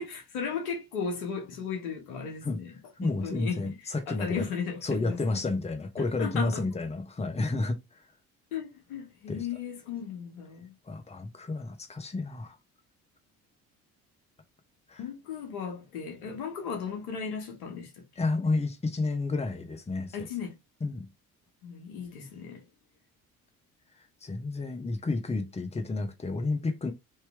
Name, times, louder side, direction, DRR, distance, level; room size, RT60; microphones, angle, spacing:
voice 1, 0.0-2.7 3.0-3.6 4.1-5.2 6.0-6.6 8.5-10.7 15.0-18.0 20.1-20.5 21.6-22.6, left 6 dB, 75° left, 1.3 m, -36 dB
voice 2, 3.0-4.4 4.8-8.0 9.3-9.5 10.9-12.6 14.9-15.0 18.2-20.3 20.8-21.1 24.2-26.9, left 3 dB, 15° left, 0.9 m, -31 dB
3.2 x 2.9 x 3.4 m
figure-of-eight pair, 50°, 43 cm